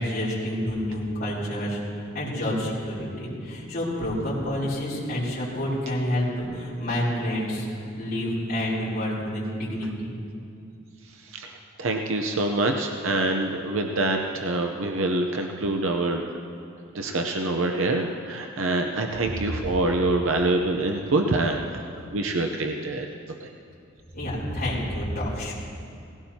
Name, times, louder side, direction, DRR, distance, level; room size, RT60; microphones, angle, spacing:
voice 1, 0.0-1.8 2.1-7.7 8.0-10.1 24.1-25.5, equal, 45° left, -9 dB, 4.1 m, -28 dB
voice 2, 11.8-16.2 16.9-21.6 22.1-23.1 23.4-23.5, right 2 dB, 65° right, 3 dB, 0.7 m, -25 dB
19.0 x 16.5 x 2.9 m, 2.5 s
head